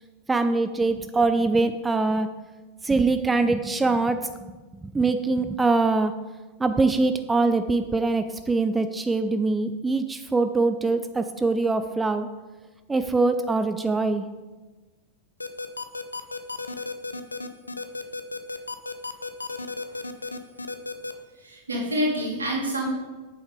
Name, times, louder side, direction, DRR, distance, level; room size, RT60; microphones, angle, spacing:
voice 1, 0.3-2.3 2.8-4.6 4.8-6.1 6.6-12.3 12.9-14.3, right 3 dB, 10° right, 9 dB, 0.5 m, -23 dB
sound 1, 15.4-21.1, left 3 dB, 80° left, 0.6 m, -33 dB
voice 2, 21.4-22.9, equal, 75° right, -2 dB, 2.7 m, -27 dB
8.6 x 7.2 x 4.9 m, 1.2 s
figure-of-eight pair, 90°, 0 cm